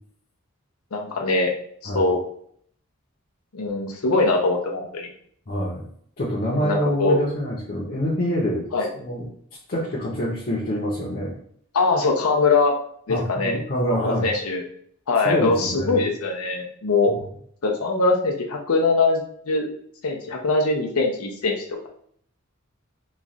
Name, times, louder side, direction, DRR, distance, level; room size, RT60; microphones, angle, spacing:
voice 1, 0.9-1.5 1.8-2.2 3.5-5.1 6.5-7.2 8.7-8.9 11.7-12.7 13.1-13.6 13.9-14.6 15.1-17.1 17.6-19.7 20.0-21.5, left 3 dB, 90° left, 1 dB, 0.6 m, -22 dB
voice 2, 5.5-5.9 6.2-9.3 9.7-11.3 13.1-14.3 15.2-16.1 17.1-17.2, equal, 45° left, -6 dB, 0.7 m, -26 dB
3.1 x 2.4 x 3.8 m, 0.62 s
head